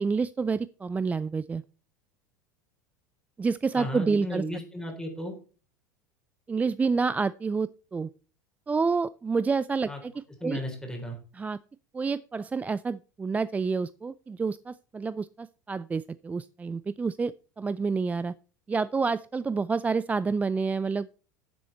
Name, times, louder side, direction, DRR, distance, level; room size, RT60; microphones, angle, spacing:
voice 1, 0.0-1.6 3.4-4.4 6.5-8.1 8.7-10.1 10.4-10.6 11.3-11.6 11.9-18.3 18.7-21.1, right 4 dB, 15° right, 19 dB, 0.4 m, -28 dB
voice 2, 3.8-5.3 9.9-10.0 10.4-11.2, left 1 dB, 5° left, 2 dB, 4.0 m, -34 dB
12.5 x 7.7 x 4.1 m, 0.37 s
hypercardioid pair, 80°, 9 cm